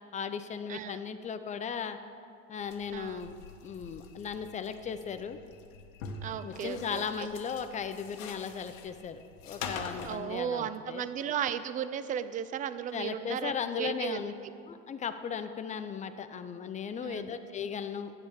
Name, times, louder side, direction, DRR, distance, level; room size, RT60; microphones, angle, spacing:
voice 1, 0.1-2.0 2.5-3.3 3.6-5.4 6.4-11.1 12.9-14.3 14.7-18.1, left 7 dB, 20° left, 9 dB, 0.7 m, -37 dB
voice 2, 0.7-1.0 2.9-3.2 6.2-7.3 10.0-14.2 17.0-17.3, right 9 dB, 20° right, 13 dB, 0.4 m, -35 dB
sound 1, 2.6-10.2, left 4 dB, 75° left, 1.6 m, -45 dB
12.5 x 9.7 x 6.7 m, 2.4 s
supercardioid pair, 120°, 39 cm